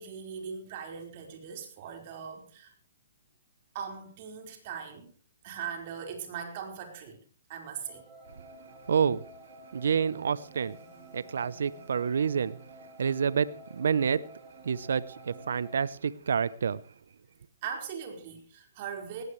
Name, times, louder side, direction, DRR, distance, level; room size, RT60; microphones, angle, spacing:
voice 1, 0.0-2.7 3.7-5.1 5.4-7.2 7.5-8.0 17.6-19.2, right 7 dB, 45° right, 4.8 m, -40 dB
sound 1, 7.8-15.8, right 1 dB, 20° right, 7.4 m, -51 dB
voice 2, 8.9-9.2 9.7-10.8 11.1-12.6 13.0-14.3 14.6-16.8, right 6 dB, 75° right, 0.8 m, -28 dB
18.5 x 17.0 x 3.2 m
hypercardioid pair, 140°, 0 cm